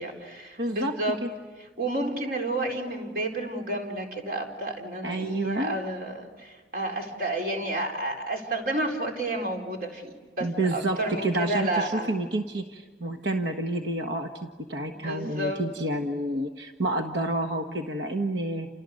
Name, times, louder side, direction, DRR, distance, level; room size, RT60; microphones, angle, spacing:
voice 1, 0.0-1.2 1.8-12.2 14.9-15.7, right 1 dB, 50° right, 2 dB, 4.3 m, -31 dB
voice 2, 0.6-1.3 5.0-5.8 10.4-18.7, right 1 dB, 75° right, 4 dB, 1.5 m, -29 dB
29.5 x 29.0 x 6.5 m, 1.3 s
head